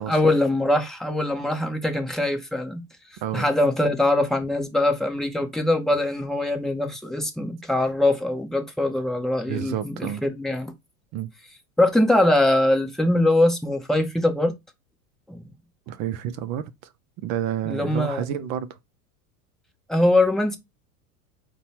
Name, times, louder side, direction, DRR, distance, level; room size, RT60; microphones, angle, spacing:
voice 1, 0.0-2.8 3.3-10.7 11.8-14.5 15.3-15.4 17.6-18.2 19.9-20.6, left 1 dB, ahead, 0.8 m, -22 dB
voice 2, 9.4-10.2 11.1-11.3 15.9-16.9 17.2-18.8, right 10 dB, 40° right, 0.5 m, -30 dB
4.2 x 2.2 x 4.1 m
hypercardioid pair, 95°, 45 cm